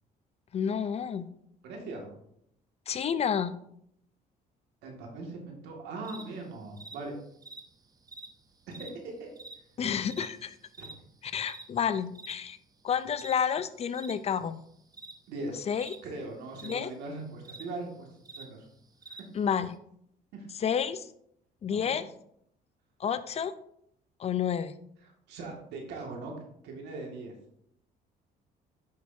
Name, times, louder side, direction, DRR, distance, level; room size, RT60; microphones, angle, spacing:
voice 1, 0.5-1.3 2.9-3.6 9.8-10.6 11.2-12.6 12.8-14.6 15.7-16.0 16.6-16.9 19.3-19.7 20.6-21.1 21.6-22.1 23.0-23.5 24.2-24.7, left 7 dB, 40° left, 13 dB, 0.5 m, -30 dB
voice 2, 1.6-2.1 4.8-7.1 8.7-9.3 10.8-10.9 15.3-15.6 16.0-18.7 19.1-19.2 20.3-20.5 21.7-22.0 25.3-26.3 26.6-27.3, right 2 dB, 85° right, 1 dB, 2.1 m, -40 dB
sound 1, 6.0-19.8, right 3 dB, 20° right, 0.8 m, -49 dB
9.4 x 6.3 x 2.7 m, 0.72 s
cardioid pair, 110°, 17 cm